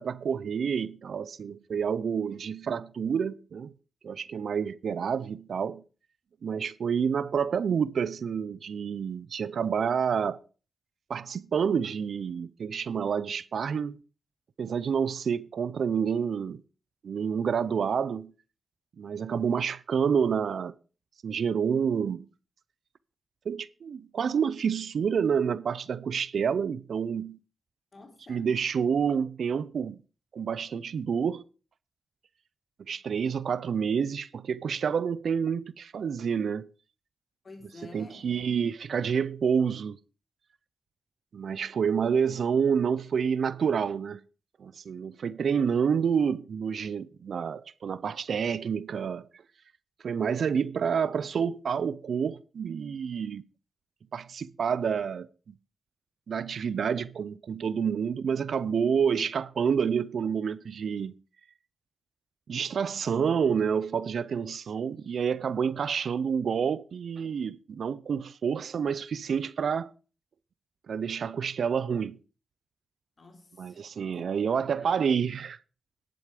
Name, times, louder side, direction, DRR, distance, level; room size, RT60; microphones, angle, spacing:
voice 1, 0.0-3.7 4.0-5.8 6.4-10.4 11.1-14.0 14.6-16.6 17.0-18.3 19.0-20.7 21.2-22.3 23.5-27.4 28.3-30.0 30.3-31.4 32.9-36.7 37.9-40.0 41.3-44.2 44.6-49.4 50.0-53.4 54.1-55.3 56.3-61.2 62.5-69.9 70.9-72.2 73.6-75.6, right 7 dB, 75° right, 0.5 m, -28 dB
voice 2, 27.9-28.6 37.4-38.4 73.2-75.0, left 2 dB, 45° left, 3.4 m, -50 dB
10.5 x 7.8 x 5.1 m
cardioid pair, 70°, 0 cm